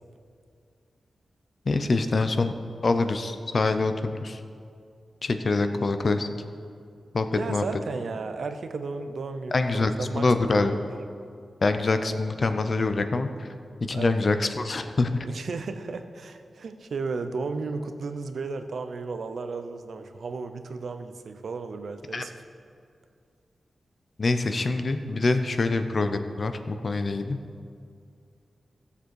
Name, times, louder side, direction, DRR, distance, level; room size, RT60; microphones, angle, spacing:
voice 1, 1.7-2.5 2.8-4.4 5.2-6.3 7.1-7.7 9.5-10.7 11.6-13.5 13.8-15.1 22.1-22.2 24.2-27.4, left 3 dB, 40° left, 8 dB, 0.6 m, -25 dB
voice 2, 7.3-10.3 10.5-10.9 12.1-12.2 13.9-14.1 15.2-22.3, right 4 dB, 65° right, 8 dB, 0.6 m, -34 dB
16.0 x 6.9 x 4.7 m, 2.3 s
wide cardioid pair, 155°, 0 cm